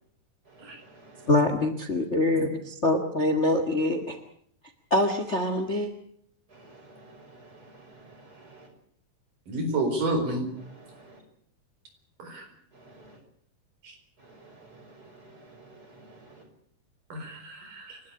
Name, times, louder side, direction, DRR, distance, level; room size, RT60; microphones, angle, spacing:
voice 1, 1.3-4.2 4.9-5.9, left 2 dB, 30° left, 8 dB, 1.6 m, -24 dB
voice 2, 6.6-8.7 10.7-11.1 12.8-12.9 14.3-14.5 15.2-16.4, right 2 dB, 25° right, 3 dB, 6.6 m, -52 dB
voice 3, 9.5-10.5 12.2-12.4 17.1-18.0, right 2 dB, 85° right, 6 dB, 6.0 m, -29 dB
29.0 x 12.0 x 9.9 m, 0.64 s
omnidirectional pair, 3.7 m